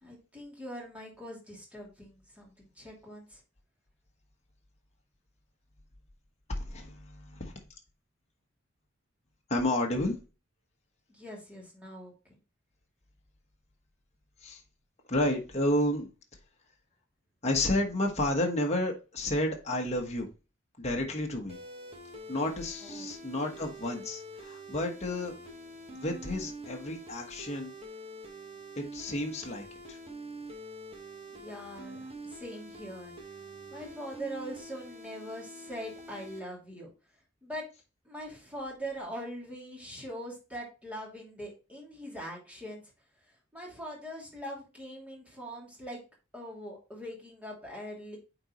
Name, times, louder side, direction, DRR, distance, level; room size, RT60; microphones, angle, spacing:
voice 1, 0.0-3.4 11.1-12.1 22.8-23.1 31.3-33.1 33.7-36.9 37.4-37.6 38.0-42.8 43.5-46.0 46.3-48.2, equal, 5° right, -3 dB, 2.7 m, -42 dB
voice 2, 6.5-7.6 9.5-10.2 14.4-14.6 15.1-16.1 17.4-20.3 20.8-21.6 22.3-25.4 25.9-27.7 28.8-30.0, left 1 dB, 35° left, 1 dB, 1.2 m, -31 dB
sound 1, 21.5-36.4, right 1 dB, 30° right, 1.4 m, -46 dB
8.8 x 4.0 x 3.0 m, 0.30 s
head